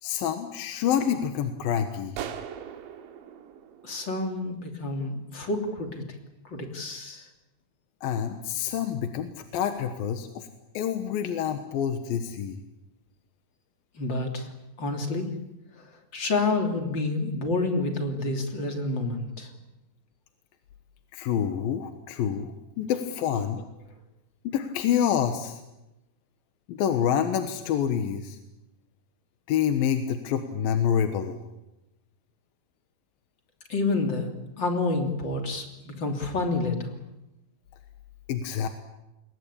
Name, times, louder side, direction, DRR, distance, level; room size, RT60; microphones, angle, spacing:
voice 1, 0.0-2.2 8.0-10.5 10.7-12.6 21.1-23.6 24.4-25.6 26.7-28.4 29.5-31.4 38.3-38.7, left 9 dB, 65° left, 7 dB, 2.7 m, -27 dB
sound 1, 2.2-4.7, right 9 dB, 85° right, 4.0 m, -40 dB
voice 2, 3.8-6.0 6.4-7.3 13.9-14.5 14.8-15.3 15.8-19.5 33.7-34.3 34.6-36.9, left 3 dB, 30° left, 4 dB, 3.1 m, -29 dB
27.5 x 22.0 x 8.5 m, 0.96 s
omnidirectional pair, 5.1 m